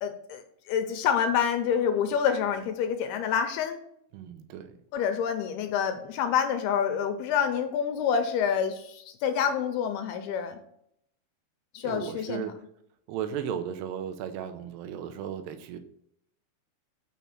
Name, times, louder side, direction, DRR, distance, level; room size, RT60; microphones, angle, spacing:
voice 1, 0.0-3.8 4.9-10.6 11.7-12.4, left 7 dB, 80° left, 7 dB, 2.5 m, -27 dB
voice 2, 4.1-4.8 11.8-12.6 13.1-15.8, right 9 dB, 80° right, 9 dB, 2.8 m, -35 dB
7.1 x 6.0 x 5.9 m, 0.72 s
omnidirectional pair, 5.0 m